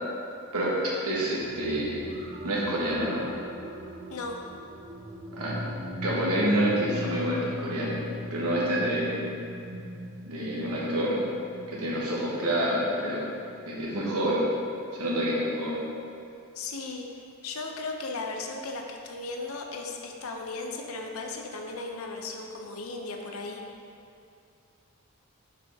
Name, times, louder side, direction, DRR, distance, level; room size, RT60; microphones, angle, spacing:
voice 1, 0.5-2.0 2.4-3.3 5.3-5.6 6.0-8.0 8.3-9.2 10.3-11.2 11.7-13.2 13.7-14.4 14.9-15.8, right 1 dB, 85° right, -5 dB, 1.4 m, -27 dB
sound 1, 1.4-14.7 15.4-15.5, equal, 40° right, 0.7 m, -40 dB
voice 2, 16.5-17.0 17.4-23.6, left 3 dB, 65° left, 2 dB, 0.7 m, -36 dB
6.7 x 5.0 x 3.5 m, 2.5 s
head